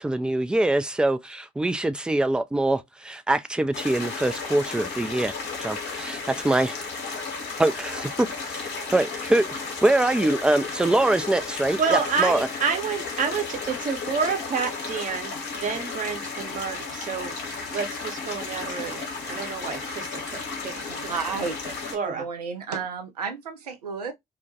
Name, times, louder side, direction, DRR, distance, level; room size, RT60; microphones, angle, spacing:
voice 1, 0.0-5.3 5.6-6.8 7.6-8.1 8.5-9.5 9.8-12.5, right 2 dB, 5° right, 0.3 m, -24 dB
sound 1, 3.7-22.0, left 4 dB, 55° left, 1.0 m, -34 dB
voice 2, 11.7-15.3 15.6-22.3, right 5 dB, 40° right, 0.8 m, -29 dB
voice 3, 20.9-21.6 22.1-24.1, right 5 dB, 85° right, 0.4 m, -32 dB
2.2 x 2.1 x 2.7 m
figure-of-eight pair, 45°, 20 cm